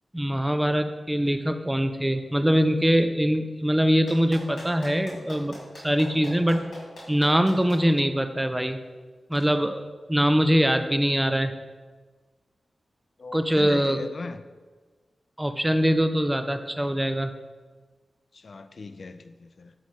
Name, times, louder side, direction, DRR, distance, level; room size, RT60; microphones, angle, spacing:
voice 1, 0.1-5.6 5.8-6.7 7.1-8.8 9.3-11.5 13.3-14.0 15.4-17.3, equal, 10° right, 9 dB, 0.4 m, -23 dB
Clapping, 4.1-7.8 9.3-9.4, left 1 dB, 85° left, 2.0 m, -42 dB
voice 2, 13.2-14.4 18.3-19.7, left 3 dB, 60° left, 10 dB, 0.4 m, -38 dB
7.2 x 5.1 x 3.2 m, 1.4 s
cardioid pair, 70°, 0 cm